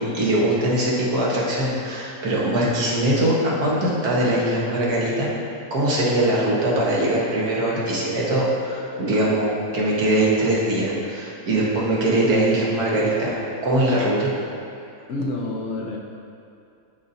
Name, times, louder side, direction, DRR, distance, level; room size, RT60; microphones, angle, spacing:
voice 1, 0.0-5.3 5.7-14.3, right 1 dB, 90° right, -6 dB, 1.9 m, -22 dB
voice 2, 15.1-16.0, left 2 dB, 60° left, -1 dB, 0.8 m, -28 dB
12.0 x 4.1 x 2.7 m, 2.6 s
omnidirectional pair, 1.6 m